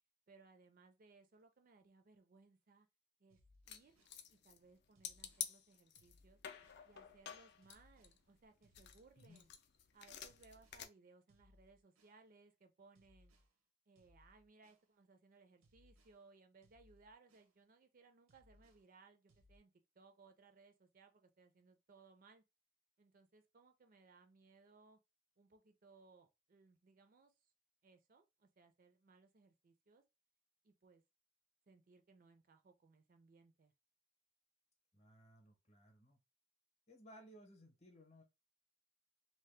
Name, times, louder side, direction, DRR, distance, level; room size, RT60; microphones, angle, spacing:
voice 1, 0.3-2.9 3.2-3.4 3.7-4.0 4.3-6.4 6.8-9.5 9.9-13.3 13.9-22.4 23.0-25.0 25.4-27.3 27.8-30.0 30.6-31.0 31.7-33.7, right 4 dB, 40° right, 0.4 m, -66 dB
sound 1, 3.3-4.2 4.9-5.5 6.0-6.9 7.6-8.2 8.6-9.5 10.3-10.9 11.3-12.2 12.9-13.5 14.0-14.9 15.6-16.2 16.6-17.5 18.3-18.9 19.3-19.6, left 1 dB, 85° right, 0.7 m, -70 dB
sound 2, 3.7-4.7 5.0-6.2 6.4-8.4 8.7-10.9, left 9 dB, 50° left, 0.4 m, -49 dB
voice 2, 9.2-9.5 34.9-36.2 36.9-38.2, equal, 30° left, 0.8 m, -61 dB
2.8 x 2.0 x 3.2 m
head